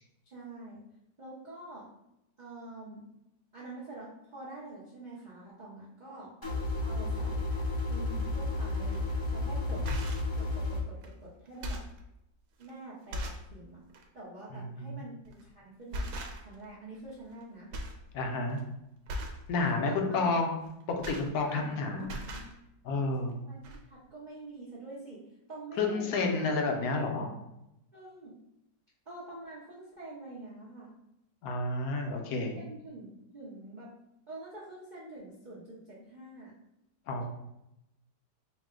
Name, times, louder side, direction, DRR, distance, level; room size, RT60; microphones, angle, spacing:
voice 1, 0.3-0.8 1.2-1.9 2.4-3.1 3.5-6.3 6.8-9.8 10.4-11.8 12.6-13.8 14.1-15.2 15.4-17.7 19.7-20.3 21.4-22.5 23.4-25.2 25.5-26.5 27.9-28.4 29.1-31.0 32.5-33.9 34.3-36.5, right 2 dB, 55° right, -7 dB, 0.5 m, -46 dB
sound 1, 6.4-10.8, left 2 dB, 20° left, 0.5 m, -32 dB
sound 2, 8.9-9.1 9.7-10.3 11.0-11.1 11.5-12.0 12.6-12.7 13.1-13.5 13.9-14.1 15.2-15.5 15.9-16.6 16.9-17.4 17.7-18.0 18.3-18.6 19.1-19.5 20.6-21.7 22.0-22.5 23.3-23.4 23.6-23.8, equal, 75° right, 1.2 m, -38 dB
voice 2, 14.5-15.1 18.1-18.6 19.5-20.6 20.9-22.2 22.8-23.4 25.8-27.3 31.4-32.5 37.1-37.2, left 3 dB, 65° left, 3 dB, 1.0 m, -30 dB
4.6 x 2.2 x 3.6 m, 0.86 s
omnidirectional pair, 1.9 m